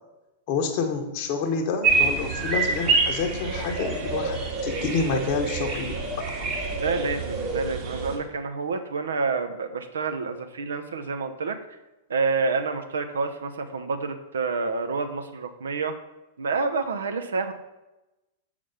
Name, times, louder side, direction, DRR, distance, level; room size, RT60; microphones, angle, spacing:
voice 1, 0.5-6.5, left 4 dB, 45° left, 4 dB, 0.9 m, -28 dB
sound 1, 1.8-8.2, right 3 dB, 35° right, 1.6 m, -26 dB
voice 2, 6.7-11.6 12.1-15.9 16.4-17.5, right 4 dB, 65° right, 7 dB, 0.7 m, -28 dB
6.7 x 5.0 x 5.5 m, 0.99 s
figure-of-eight pair, 95°, 0 cm